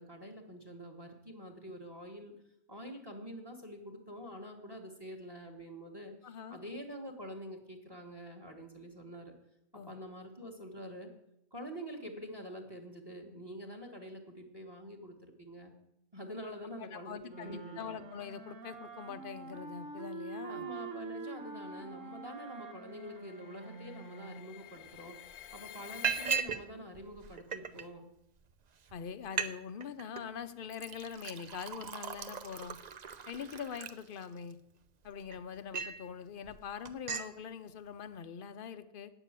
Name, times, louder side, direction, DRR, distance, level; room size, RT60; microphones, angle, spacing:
voice 1, 0.0-2.3 2.7-9.3 9.7-11.1 11.5-15.7 16.1-18.0 20.5-25.2 25.5-28.1, equal, 20° right, 4 dB, 1.4 m, -46 dB
voice 2, 6.2-6.6 9.7-9.9 16.8-20.7 28.9-32.8 33.3-34.6 35.0-39.1, left 7 dB, 50° left, 12 dB, 0.7 m, -43 dB
sound 1, 17.3-24.6, right 4 dB, 65° right, 1.5 m, -46 dB
sound 2, 21.6-26.4, left 11 dB, 70° left, 1.0 m, -50 dB
Liquid, 24.9-25.0 25.3-25.6 26.0-26.6 26.9-27.8 28.5-28.6 28.9-29.0 29.2-29.5 29.8-30.2 30.7-34.5 35.0-36.0 36.4-36.6 36.9-37.3, right 6 dB, 50° right, 0.5 m, -38 dB
8.9 x 7.0 x 8.9 m, 0.80 s
omnidirectional pair, 1.4 m